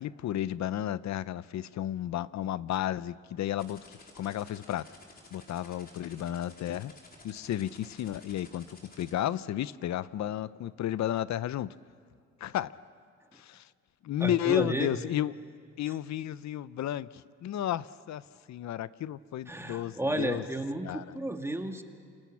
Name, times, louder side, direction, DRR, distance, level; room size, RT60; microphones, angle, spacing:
voice 1, 0.0-4.9 5.3-6.9 7.2-11.7 12.4-12.7 13.3-13.7 14.0-15.3 15.8-18.2 18.5-20.4 20.8-21.0, left 12 dB, 65° left, 17 dB, 0.7 m, -32 dB
sound 1, 3.6-9.1, left 3 dB, 30° left, 4.6 m, -53 dB
voice 2, 14.2-14.9 19.5-21.8, right 1 dB, 10° right, 4 dB, 2.0 m, -32 dB
28.0 x 27.5 x 7.3 m, 2.1 s
cardioid pair, 90°, 30 cm